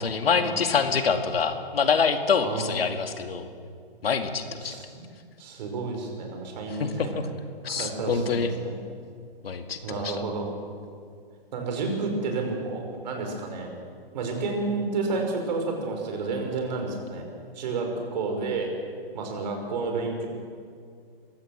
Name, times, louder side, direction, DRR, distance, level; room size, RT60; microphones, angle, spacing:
voice 1, 0.0-3.5 4.0-4.8 6.8-7.3 7.6-8.5 9.4-10.2, left 5 dB, 75° left, 7 dB, 2.3 m, -26 dB
voice 2, 2.4-2.8 4.6-5.1 5.4-7.2 7.7-8.8 9.8-10.5 11.5-13.7 14.1-17.2 17.5-18.7 19.1-20.3, right 3 dB, 45° right, 3 dB, 5.3 m, -30 dB
22.5 x 16.0 x 7.5 m, 2.2 s
hypercardioid pair, 150°, 30 cm